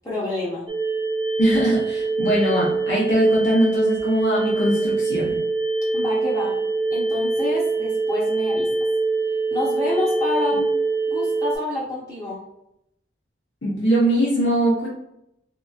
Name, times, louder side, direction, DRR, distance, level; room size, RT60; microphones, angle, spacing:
voice 1, 0.0-0.7 5.9-6.6 6.9-8.7 9.5-10.7 11.1-12.4, left 2 dB, 20° left, -8 dB, 0.7 m, -28 dB
sound 1, 0.7-11.6, right 3 dB, 25° right, 0.7 m, -24 dB
voice 2, 1.4-5.4 13.6-14.9, right 1 dB, 80° left, -7 dB, 1.0 m, -21 dB
3.7 x 2.9 x 2.4 m, 0.80 s
head